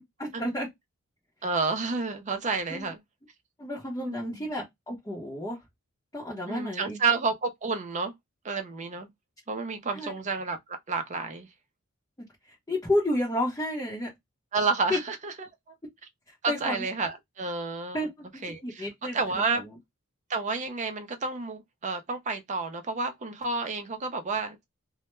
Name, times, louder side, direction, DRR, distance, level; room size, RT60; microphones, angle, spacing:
voice 1, 0.2-0.7 2.7-2.9 3.6-5.6 6.1-7.0 9.9-10.2 12.7-14.1 14.9-15.0 16.5-16.8 17.9-18.3 18.6-19.7, left 1 dB, 15° left, 0.7 m, -31 dB
voice 2, 1.4-3.0 4.0-4.5 6.5-8.1 8.4-9.1 9.5-10.6 10.9-11.5 14.5-15.5 16.4-18.1 18.4-19.6 20.3-24.6, right 4 dB, 35° right, 0.5 m, -30 dB
2.2 x 2.1 x 2.9 m
head